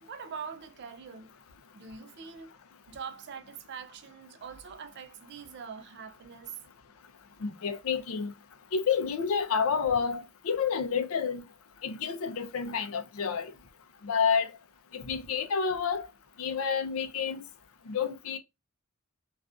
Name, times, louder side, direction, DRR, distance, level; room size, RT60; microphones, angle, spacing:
voice 1, 0.0-1.3 1.7-2.5 2.9-6.6, right 6 dB, 55° right, 0.3 m, -43 dB
voice 2, 7.4-8.3 8.7-11.4 11.8-13.5 14.0-14.5 14.9-16.1 16.4-17.4 17.9-18.4, left 6 dB, 85° left, 0.5 m, -29 dB
2.4 x 2.4 x 2.2 m
head